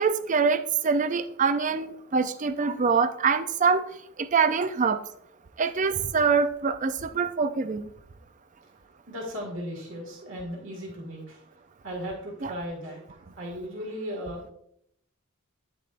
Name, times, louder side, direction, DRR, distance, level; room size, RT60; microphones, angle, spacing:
voice 1, 0.0-3.9 4.2-5.0 5.6-7.9 12.4-12.5, right 5 dB, 35° right, 12 dB, 0.4 m, -24 dB
voice 2, 9.1-14.4, equal, 60° right, -1 dB, 2.0 m, -37 dB
9.2 x 6.8 x 2.5 m, 0.71 s
head